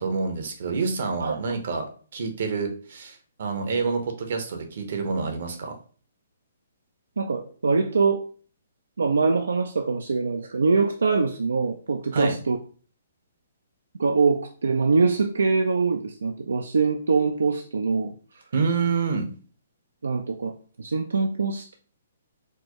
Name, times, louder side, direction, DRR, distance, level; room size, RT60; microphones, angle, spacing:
voice 1, 0.0-1.9 2.1-5.7 12.1-12.3 18.5-19.3, right 4 dB, 60° right, 5 dB, 0.8 m, -27 dB
voice 2, 7.2-8.2 9.0-12.6 14.0-18.1 20.0-21.7, right 4 dB, 85° right, 5 dB, 0.3 m, -23 dB
4.3 x 2.1 x 2.9 m, 0.41 s
hypercardioid pair, 145°, 0 cm